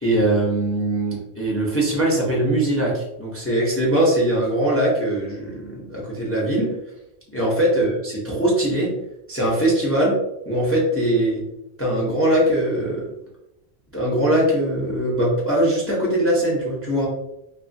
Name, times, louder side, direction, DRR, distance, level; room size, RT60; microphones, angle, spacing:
voice 1, 0.0-6.7 7.3-8.9 9.3-10.1 10.5-11.4 11.8-13.1 13.9-17.1, right 1 dB, 20° left, -5 dB, 0.4 m, -21 dB
2.7 x 2.4 x 2.5 m, 0.88 s
omnidirectional pair, 1.2 m